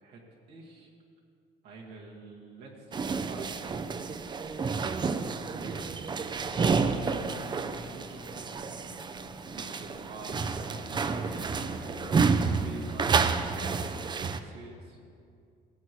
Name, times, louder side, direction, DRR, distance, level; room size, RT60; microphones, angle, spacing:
voice 1, 0.5-0.9 1.6-4.2 4.5-4.9 5.5-8.9 9.5-11.5 12.6-13.8 14.4-15.0, right 3 dB, 85° right, -2 dB, 1.7 m, -48 dB
sound 1, 2.9-14.4, right 5 dB, 25° right, 0.4 m, -30 dB
sound 2, 6.4-13.7, left 4 dB, 65° left, 1.3 m, -49 dB
16.0 x 8.0 x 3.0 m, 2.4 s
cardioid pair, 110°, 17 cm